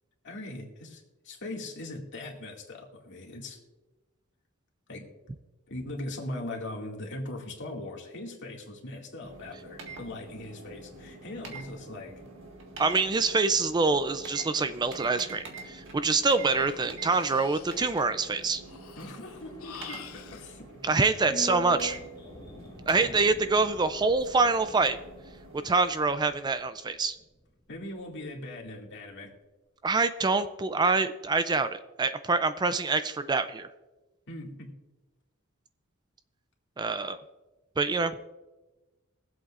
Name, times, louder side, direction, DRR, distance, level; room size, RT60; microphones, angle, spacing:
voice 1, 0.2-3.6 4.9-5.1 5.7-12.1 19.0-21.0 21.3-21.5 23.0-23.1 27.7-29.3 34.3-34.7, left 1 dB, 60° left, 0 dB, 2.2 m, -40 dB
sound 1, 9.2-25.7, right 3 dB, 65° right, 1.7 m, -46 dB
voice 2, 12.8-18.6 20.8-22.0 22.9-25.0 25.5-27.1 29.8-33.7 36.8-37.2 37.8-38.3, right 3 dB, 20° right, 11 dB, 0.4 m, -26 dB
Breathing, 15.9-20.5, left 7 dB, 85° left, 0.9 m, -48 dB
sound 2, 18.2-28.4 28.6-28.7, right 1 dB, 20° left, 1.5 m, -46 dB
22.5 x 7.9 x 2.5 m, 1.2 s
head